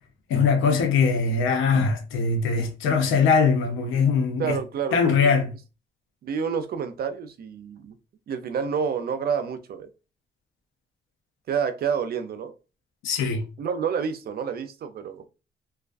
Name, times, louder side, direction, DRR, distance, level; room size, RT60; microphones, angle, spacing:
voice 1, 0.3-4.6 4.9-5.5 13.0-13.4, left 5 dB, 90° left, 0.6 m, -21 dB
voice 2, 4.4-5.3 6.2-7.9 8.3-9.9 11.5-12.5 13.6-15.3, right 6 dB, 50° right, 0.4 m, -29 dB
2.3 x 2.2 x 2.4 m
cardioid pair, 90°, 20 cm